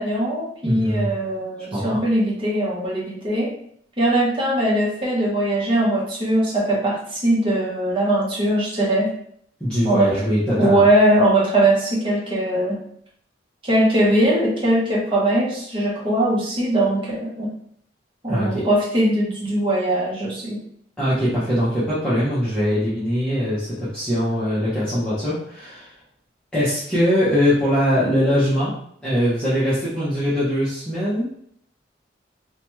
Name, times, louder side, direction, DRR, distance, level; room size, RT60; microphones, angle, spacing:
voice 1, 0.0-3.5 4.0-9.1 9.8-10.1 10.6-12.8 13.6-17.5 18.2-20.6, right 1 dB, 25° right, -5 dB, 0.8 m, -20 dB
voice 2, 0.6-1.1 1.7-2.0 9.6-10.9 18.3-18.7 21.0-25.9 26.5-28.7 29.0-31.3, equal, 5° left, -12 dB, 0.7 m, -21 dB
2.9 x 2.2 x 3.0 m, 0.66 s
head